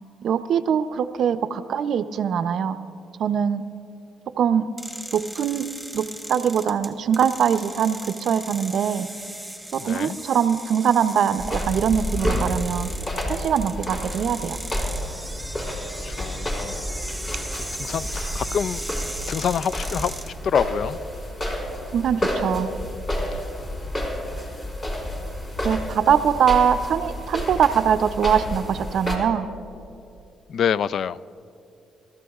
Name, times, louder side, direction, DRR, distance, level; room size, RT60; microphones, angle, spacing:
voice 1, 0.2-2.8 3.2-3.6 4.4-4.7 5.1-5.7 5.9-9.1 9.7-12.9 13.3-14.6 21.9-22.7 25.6-29.5, right 8 dB, 65° right, 0.5 m, -22 dB
sound 1, 4.8-20.3, right 1 dB, ahead, 1.5 m, -37 dB
voice 2, 9.8-10.2 15.6-16.8 17.8-18.8 19.3-21.0 30.5-31.2, left 8 dB, 65° left, 0.3 m, -27 dB
sound 2, 11.4-29.2, equal, 40° left, 3.8 m, -30 dB
26.5 x 13.5 x 2.4 m
cardioid pair, 90°, 0 cm